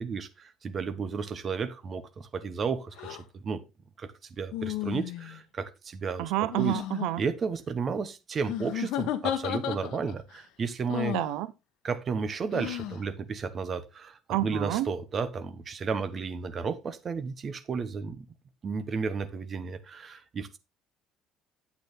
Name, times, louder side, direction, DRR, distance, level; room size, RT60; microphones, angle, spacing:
voice 1, 0.0-3.2 3.4-3.6 4.0-4.1 4.4-6.3 6.6-6.8 7.2-11.2 11.8-18.3 18.6-20.6, right 5 dB, 30° right, 1.0 m, -33 dB
sound 1, 3.0-3.2 4.5-5.4 6.5-7.1 8.4-10.2 10.9-11.3 12.5-13.0, left 12 dB, 70° left, 1.2 m, -33 dB
voice 2, 6.2-7.2 11.1-11.5 14.3-14.9, right 16 dB, 75° right, 0.7 m, -29 dB
8.7 x 8.1 x 3.6 m
cardioid pair, 160°, 0 cm